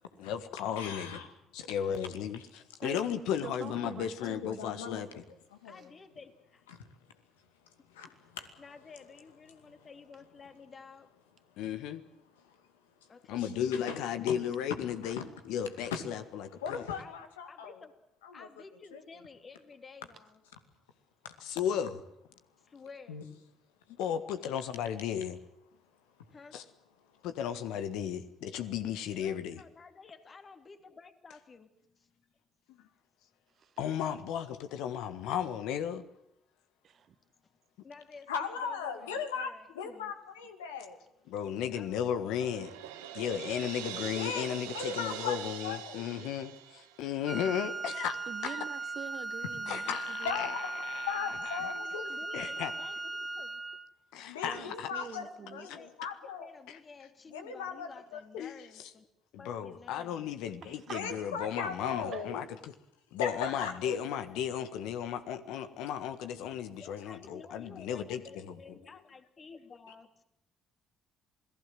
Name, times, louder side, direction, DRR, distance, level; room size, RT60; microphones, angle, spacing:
voice 1, 0.2-1.2 1.5-5.1 11.6-12.0 13.3-15.2 15.5-16.8 21.4-22.0 24.0-25.4 26.5-26.6 27.2-29.6 33.8-36.0 41.3-42.7 43.1-48.6 49.7-51.1 51.5-51.7 52.3-52.7 54.1-54.9 58.3-58.5 59.4-62.4 63.1-68.2, left 9 dB, 75° left, 1.5 m, -35 dB
voice 2, 0.8-1.3 1.6-1.7 2.0-2.1 4.2-5.2 5.5-5.9 6.7-6.9 7.9-8.6 9.6-9.7 12.4-12.6 13.4-14.0 14.3-14.4 15.0-15.2 15.8-16.0 16.5-17.8 18.2-18.5 18.9-19.0 23.1-23.2 38.3-39.5 39.7-41.0 44.0-44.5 44.7-45.4 45.6-46.3 49.9-50.0 50.2-50.6 51.1-52.0 54.3-56.5 57.3-58.2 60.9-62.4 63.2-64.0, left 6 dB, 90° left, 2.4 m, -38 dB
voice 3, 2.8-4.9 5.7-5.8 33.5-33.8 36.8-37.1 48.3-50.5 54.4-55.7 60.6-61.3 62.1-62.2, right 8 dB, 55° right, 1.4 m, -46 dB
voice 4, 5.6-6.7 8.1-8.2 8.6-11.1 13.1-13.5 13.7-13.9 17.0-17.1 17.5-17.9 18.3-20.4 22.6-23.3 26.3-26.7 29.1-32.2 37.8-40.1 41.7-42.0 43.9-44.4 51.6-53.6 55.2-56.0 56.4-59.1 59.4-60.3 66.8-70.2, left 4 dB, 40° left, 2.9 m, -52 dB
Crash cymbal, 42.4-47.3, right 11 dB, 85° right, 1.9 m, -43 dB
Wind instrument woodwind instrument, 47.3-53.9, right 2 dB, 25° right, 1.6 m, -38 dB
28.0 x 18.0 x 7.7 m
hypercardioid pair, 55°, 0 cm